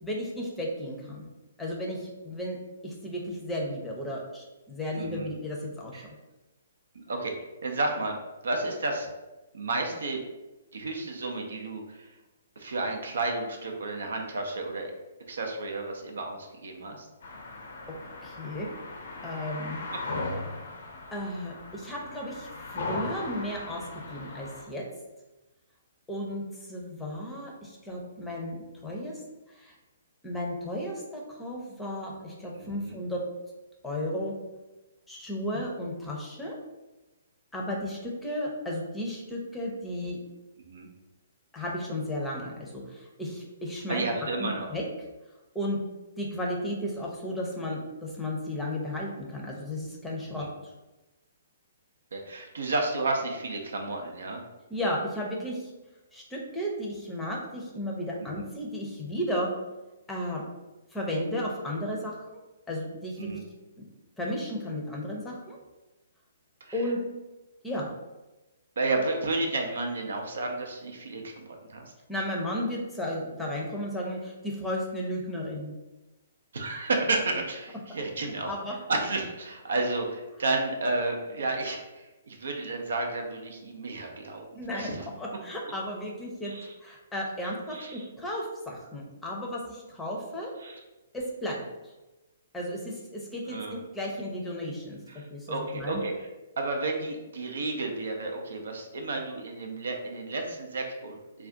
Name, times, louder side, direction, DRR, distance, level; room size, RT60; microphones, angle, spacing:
voice 1, 0.0-1.2 1.6-2.6 2.8-6.0 18.2-18.7 19.2-19.8 21.1-23.8 24.1-24.8 26.1-26.4 26.7-29.2 29.5-29.8 30.2-33.2 33.8-34.3 35.1-36.6 37.5-40.2 41.5-44.8 45.5-45.8 46.2-50.5 54.7-55.7 56.1-59.5 60.1-60.4 60.9-62.4 62.7-63.4 64.2-65.6 66.7-67.0 67.6-67.9 72.1-75.7 78.5-78.8 84.5-86.5 86.8-90.5 91.1-91.6 92.5-95.0 95.3-96.0, left 1 dB, 10° left, -2 dB, 0.6 m, -34 dB
voice 2, 4.9-5.3 5.9-6.1 7.1-7.3 7.6-8.2 8.4-9.1 9.5-10.2 10.7-12.1 12.6-14.9 15.3-17.1 32.5-33.0 40.7-40.9 43.9-44.7 50.3-50.5 52.1-54.4 58.2-58.4 63.2-63.4 66.7-66.8 68.8-71.8 76.5-78.5 78.9-84.5 84.7-85.1 86.4-86.7 87.7-88.1 90.6-90.8 93.5-93.8 95.1-96.3 96.6-101.5, right 2 dB, 70° right, 3 dB, 0.5 m, -32 dB
sound 1, 17.2-24.6, left 2 dB, 65° left, 0.6 m, -38 dB
2.4 x 2.3 x 3.7 m, 1.1 s
figure-of-eight pair, 130°, 0 cm